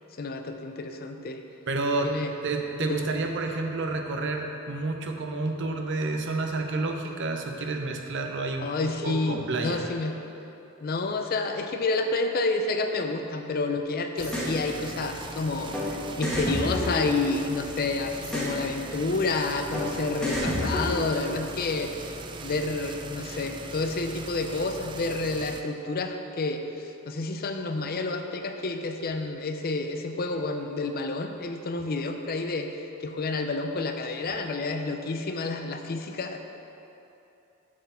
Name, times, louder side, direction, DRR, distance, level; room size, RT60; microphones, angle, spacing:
voice 1, 0.2-1.4 2.0-2.3 2.9-3.1 8.6-10.2 10.8-22.1 22.4-36.4, left 3 dB, 45° left, 6 dB, 0.5 m, -29 dB
voice 2, 1.7-2.1 2.4-9.8, right 3 dB, 60° right, 3 dB, 0.7 m, -30 dB
sound 1, 14.2-14.5 15.7-15.9 16.2-17.6 18.2-18.6 19.7-19.9 20.2-21.3, equal, 5° left, 1.4 m, -29 dB
sound 2, 14.2-25.6, right 3 dB, 25° right, 0.3 m, -40 dB
7.4 x 4.4 x 6.9 m, 2.9 s
head